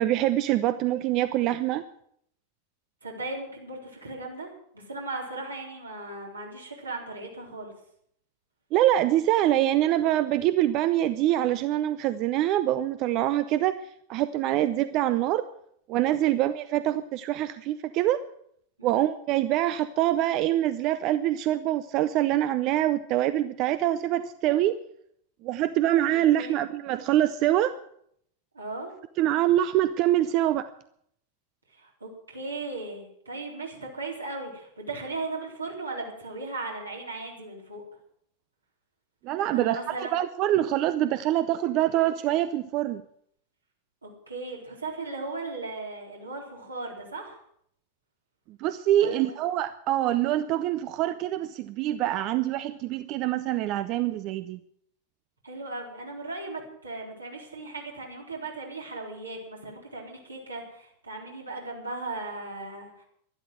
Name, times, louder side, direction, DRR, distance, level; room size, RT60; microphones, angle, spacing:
voice 1, 0.0-1.8 8.7-13.8 14.1-15.5 15.9-18.2 18.8-24.8 25.4-27.7 29.2-30.7 39.2-43.0 48.6-54.6, right 13 dB, 40° right, 13 dB, 0.6 m, -25 dB
voice 2, 3.0-7.7 16.2-16.4 18.8-19.0 26.4-26.6 28.5-28.9 31.7-37.8 39.5-40.2 44.0-47.4 49.0-49.3 55.4-63.0, right 3 dB, 80° right, -1 dB, 4.0 m, -37 dB
12.0 x 12.0 x 7.6 m, 0.69 s
figure-of-eight pair, 90°, 0 cm